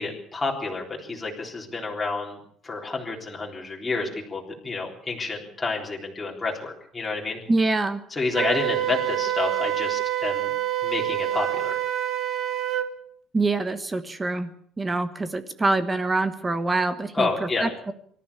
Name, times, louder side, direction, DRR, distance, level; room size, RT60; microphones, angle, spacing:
voice 1, 0.0-2.4 2.6-7.4 8.1-10.5 10.8-11.8 17.1-17.7, left 3 dB, 10° left, -2 dB, 3.7 m, -29 dB
voice 2, 7.5-8.0 13.3-14.5 14.8-17.3 17.6-17.9, right 3 dB, 15° right, 10 dB, 1.3 m, -25 dB
Wind instrument woodwind instrument, 8.3-12.9, right 12 dB, 35° right, 1.9 m, -26 dB
25.0 x 13.5 x 8.5 m, 0.65 s
cardioid pair, 175°, 0 cm